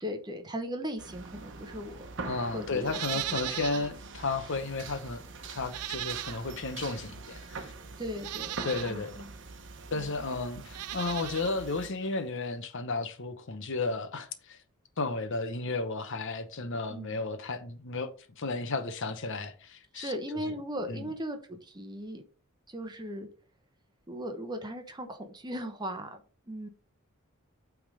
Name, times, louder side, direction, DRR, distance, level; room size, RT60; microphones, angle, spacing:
voice 1, 0.0-2.1 2.4-3.0 3.5-3.6 8.0-8.6 8.9-9.3 9.9-10.1 16.9-17.2 19.9-22.2 22.7-23.3 24.1-26.7, equal, 20° right, 0.9 m, -38 dB
sound 1, 1.0-11.9, right 3 dB, 55° right, 1.1 m, -44 dB
voice 2, 2.2-5.2 5.5-7.7 8.6-9.1 9.9-14.6 15.0-20.4 20.9-21.1, left 3 dB, 55° left, 0.9 m, -33 dB
Livestock farm animals working animals, 2.8-3.9 4.3-4.4 5.6-6.7 7.5-7.6 8.1-8.9 10.6-11.5 11.8-11.9, right 15 dB, 85° right, 0.4 m, -37 dB
8.6 x 3.6 x 4.9 m
head